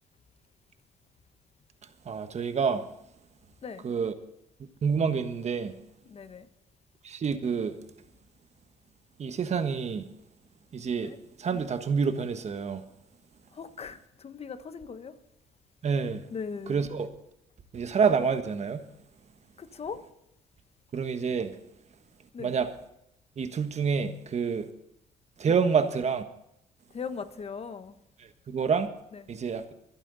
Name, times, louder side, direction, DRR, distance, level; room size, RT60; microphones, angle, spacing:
voice 1, 2.1-2.8 3.8-4.1 4.8-5.8 7.0-7.8 9.2-10.1 10.7-11.1 11.4-12.8 15.8-16.2 16.7-17.1 17.7-18.8 20.9-21.6 22.4-22.7 23.4-24.7 25.4-26.2 28.5-28.9 29.3-29.7, right 6 dB, 45° right, 9 dB, 1.4 m, -27 dB
voice 2, 6.0-6.5 11.0-11.2 13.5-15.2 16.3-16.8 19.6-20.0 22.3-22.5 25.5-25.6 26.9-28.0 29.1-29.3, left 5 dB, 40° left, 10 dB, 1.3 m, -39 dB
24.5 x 8.9 x 4.1 m, 0.81 s
cardioid pair, 90°, 16 cm